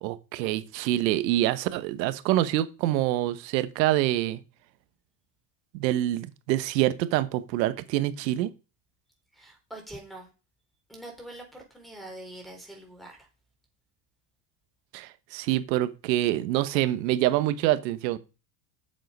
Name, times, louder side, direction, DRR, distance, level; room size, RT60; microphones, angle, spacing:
voice 1, 0.0-4.4 5.7-8.5 14.9-18.2, right 14 dB, 85° right, 1.3 m, -26 dB
voice 2, 9.3-10.3 10.9-13.3, right 1 dB, ahead, 4.1 m, -44 dB
7.8 x 7.5 x 5.4 m
supercardioid pair, 110°, 50 cm